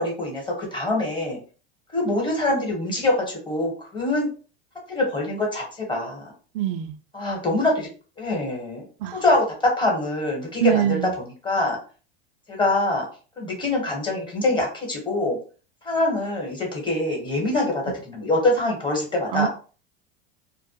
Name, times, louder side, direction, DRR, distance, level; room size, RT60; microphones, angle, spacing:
voice 1, 0.0-1.4 1.9-4.3 4.9-6.3 7.1-7.9 8.2-8.8 9.1-11.8 12.5-13.0 13.4-15.4 15.8-19.5, left 2 dB, 15° left, 1.1 m, -24 dB
voice 2, 6.5-6.9 9.0-9.2 10.6-11.1 19.3-19.5, right 12 dB, 65° right, 0.4 m, -23 dB
2.1 x 2.1 x 2.9 m
hypercardioid pair, 100°, 30 cm